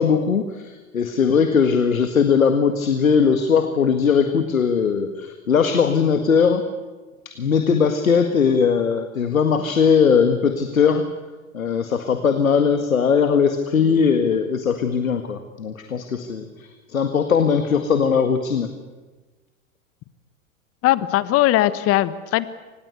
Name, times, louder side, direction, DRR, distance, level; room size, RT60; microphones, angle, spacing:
voice 1, 0.0-6.6 7.3-11.1 11.5-18.7, left 6 dB, 85° left, 8 dB, 1.9 m, -19 dB
voice 2, 20.8-22.5, left 15 dB, 35° left, 16 dB, 1.3 m, -19 dB
26.0 x 20.0 x 8.2 m, 1.3 s
hypercardioid pair, 105°, 40 cm